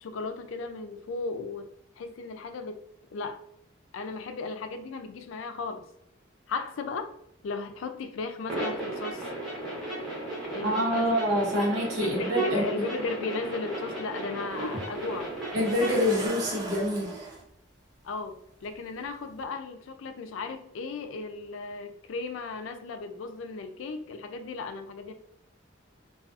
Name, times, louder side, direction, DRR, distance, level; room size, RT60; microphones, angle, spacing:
voice 1, 0.0-2.8 3.1-3.4 3.9-5.9 6.5-7.1 7.4-9.2 10.5-11.1 11.5-11.7 12.0-15.3 18.0-25.1, left 4 dB, 80° left, 7 dB, 0.4 m, -36 dB
sound 1, 8.5-16.3, right 2 dB, ahead, 0.8 m, -34 dB
voice 2, 10.6-12.9 14.6-14.7 15.5-17.3, equal, 85° right, -2 dB, 1.0 m, -27 dB
sound 2, 14.5-14.6 15.6-17.4 18.6-18.7 19.3-19.4, right 3 dB, 20° right, 0.4 m, -38 dB
2.5 x 2.3 x 2.4 m, 0.73 s
head